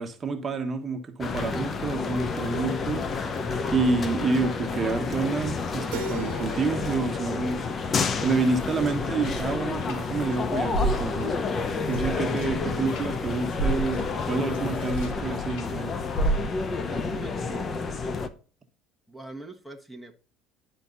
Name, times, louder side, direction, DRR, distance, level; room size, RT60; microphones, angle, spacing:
voice 1, 0.0-3.1 3.7-7.6 8.2-15.9, right 4 dB, 30° right, 1.3 m, -28 dB
sound 1, 1.2-18.3, left 4 dB, 35° left, 0.9 m, -30 dB
Keyboard (musical), 5.9-8.8, right 3 dB, 75° right, 0.8 m, -42 dB
sound 2, 8.2-10.4 10.7-15.7 16.1-16.8, right 2 dB, 70° left, 3.0 m, -32 dB
voice 2, 16.9-18.0 19.1-20.1, right 2 dB, 5° left, 1.4 m, -42 dB
10.5 x 4.5 x 4.0 m
supercardioid pair, 95°, 0 cm